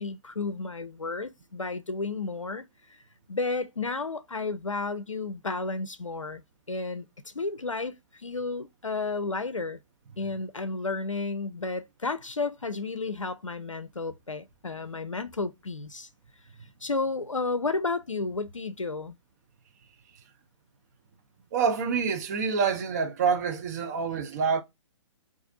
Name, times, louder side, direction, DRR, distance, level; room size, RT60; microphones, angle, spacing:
voice 1, 0.0-3.0 3.3-6.4 6.7-9.8 10.2-16.1 16.8-19.2 24.1-24.2, left 3 dB, 90° left, 0.4 m, -32 dB
voice 2, 21.5-24.6, right 6 dB, 35° right, 0.5 m, -27 dB
4.0 x 2.5 x 2.6 m
figure-of-eight pair, 125°, 16 cm